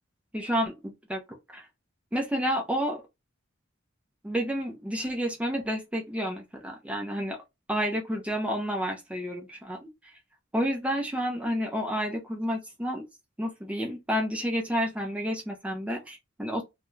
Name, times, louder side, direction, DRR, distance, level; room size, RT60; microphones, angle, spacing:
voice 1, 0.3-1.7 2.1-3.0 4.2-7.4 7.7-10.1 10.5-13.1 13.4-16.6, equal, 5° right, 0.4 m, -30 dB
2.3 x 2.0 x 3.0 m
head